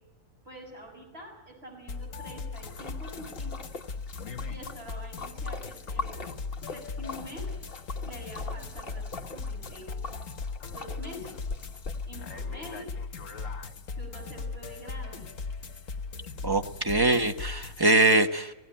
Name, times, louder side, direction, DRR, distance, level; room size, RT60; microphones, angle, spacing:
voice 1, 0.5-3.6 4.5-6.3 6.6-7.5 8.0-9.9 10.7-11.5 12.1-12.9 13.9-15.3, equal, 45° right, -1 dB, 7.1 m, -45 dB
sound 1, 1.9-17.9, left 4 dB, 65° left, 1.7 m, -38 dB
Splash splatter, 2.5-12.1, left 3 dB, 45° left, 1.5 m, -42 dB
voice 2, 16.4-18.5, right 2 dB, 20° right, 7 dB, 0.9 m, -23 dB
17.5 x 17.0 x 10.0 m, 1.1 s
omnidirectional pair, 1.5 m